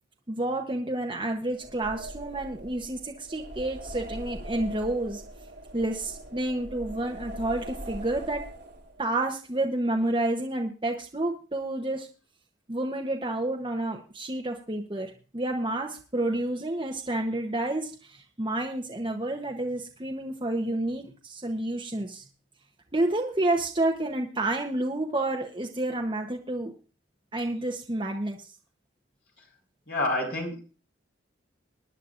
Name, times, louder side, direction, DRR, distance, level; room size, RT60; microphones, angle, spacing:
voice 1, 0.3-5.2 5.7-8.5 9.0-12.1 12.7-22.2 22.9-26.7 27.3-28.5, right 1 dB, 25° right, 2 dB, 0.9 m, -29 dB
sound 1, 1.5-9.1, right 1 dB, 55° right, 2.7 m, -41 dB
voice 2, 29.9-30.6, left 2 dB, 55° left, 0 dB, 4.9 m, -28 dB
22.5 x 10.0 x 2.5 m, 0.34 s
head